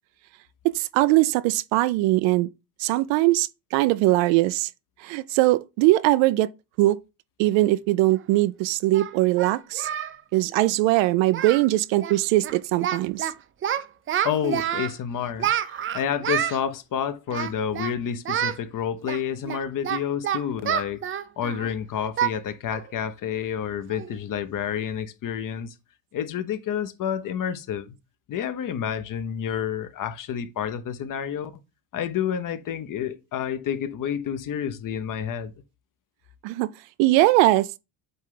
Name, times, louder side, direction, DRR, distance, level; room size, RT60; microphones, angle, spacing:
voice 1, 0.6-2.5 2.8-4.7 5.0-6.5 6.8-7.0 7.4-9.9 10.3-13.3 36.4-36.7 37.0-37.7, right 17 dB, 90° right, 0.6 m, -21 dB
Singing, 8.1-8.2 8.9-10.2 10.4-10.6 10.9-11.1 11.3-11.7 12.0-12.2 12.4-13.3 13.6-14.9 15.4-16.6 17.3-17.9 18.3-18.6 19.1-21.7 22.2-22.4 22.7-22.9 23.3-23.4 23.9-24.2, right 10 dB, 30° right, 0.4 m, -28 dB
voice 2, 14.2-25.7 26.1-27.9 28.3-31.5 31.9-35.5, left 8 dB, 45° left, 0.8 m, -29 dB
8.0 x 3.2 x 3.8 m
cardioid pair, 115°, 45 cm